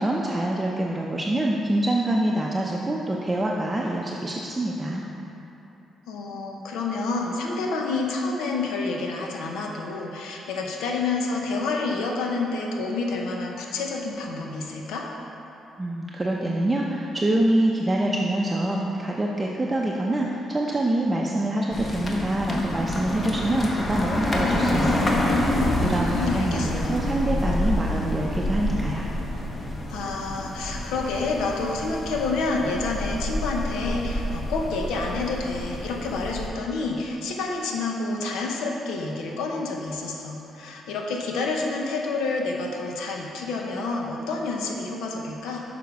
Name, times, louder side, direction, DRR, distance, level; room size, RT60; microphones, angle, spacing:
voice 1, 0.0-5.0 15.8-29.0, right 1 dB, 20° right, -2 dB, 0.6 m, -25 dB
voice 2, 6.1-15.1 25.8-27.0 29.9-45.6, left 3 dB, 90° left, 0 dB, 0.7 m, -29 dB
sound 1, 21.7-36.5, left 1 dB, 35° left, 1.0 m, -27 dB
7.0 x 5.1 x 4.7 m, 3.0 s
cardioid pair, 90°, 0 cm